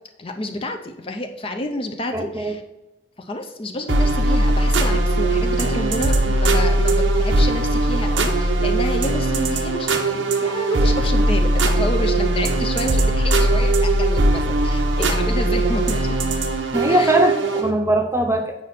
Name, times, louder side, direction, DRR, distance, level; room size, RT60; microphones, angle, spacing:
voice 1, 0.2-2.6 3.2-16.2 16.9-17.2, left 1 dB, 30° left, 5 dB, 0.5 m, -29 dB
voice 2, 2.1-2.5 16.7-18.6, right 1 dB, 15° right, 5 dB, 0.7 m, -20 dB
sound 1, 3.9-17.7, right 1 dB, 90° right, 0.9 m, -19 dB
8.2 x 5.2 x 4.1 m, 0.98 s
head